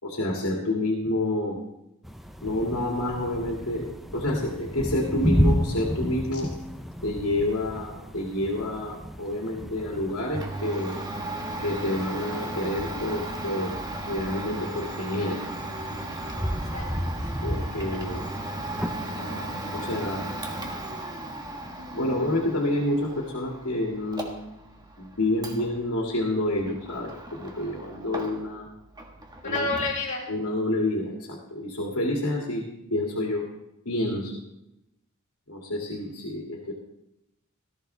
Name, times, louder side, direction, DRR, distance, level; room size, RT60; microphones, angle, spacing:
voice 1, 0.0-1.6 2.4-6.5 7.0-11.0 11.6-13.8 14.1-15.4 17.4-18.2 19.0-20.2 21.9-24.3 25.0-28.7 29.4-29.7 30.3-33.5 33.8-34.3 35.5-36.7, left 1 dB, 75° left, -2 dB, 2.5 m, -28 dB
sound 1, 2.0-20.9, equal, ahead, 0.7 m, -33 dB
Domestic sounds home sounds, 10.3-28.7 28.9-30.0, right 1 dB, 20° right, 1.5 m, -36 dB
voice 2, 16.7-17.5 29.4-30.3, left 3 dB, 35° left, -5 dB, 4.8 m, -31 dB
18.0 x 14.0 x 3.4 m, 0.86 s
head